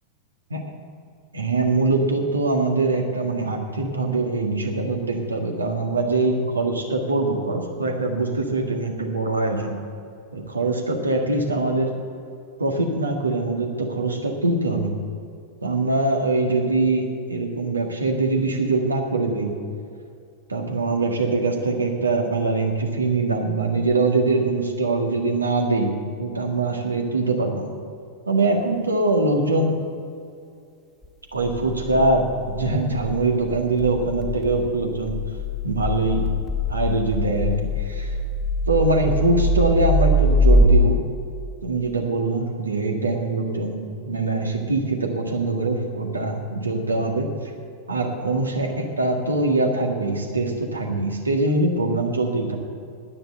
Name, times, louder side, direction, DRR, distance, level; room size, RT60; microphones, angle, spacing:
voice 1, 1.3-9.8 10.3-11.9 12.6-14.9 15.6-19.5 20.5-25.9 26.2-27.7 28.3-29.8 31.3-35.2 35.6-36.3 36.7-38.1 38.7-41.0 41.6-47.3 47.9-52.6, right 2 dB, 75° right, 3 dB, 1.6 m, -23 dB
sound 1, 31.4-40.7, left 1 dB, 5° right, 1.4 m, -23 dB
10.0 x 9.7 x 7.8 m, 2.4 s
figure-of-eight pair, 90°, 0 cm